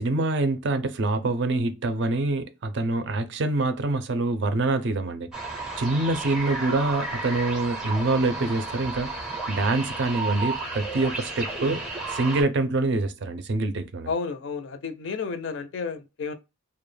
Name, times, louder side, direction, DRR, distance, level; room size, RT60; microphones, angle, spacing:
voice 1, 0.0-5.3 5.8-9.1 9.5-11.8 12.1-14.1, right 2 dB, 55° right, 0.4 m, -25 dB
sound 1, 5.3-12.4, right 3 dB, 5° right, 0.5 m, -33 dB
voice 2, 14.1-16.3, left 5 dB, 60° left, 0.4 m, -31 dB
2.2 x 2.0 x 3.1 m
head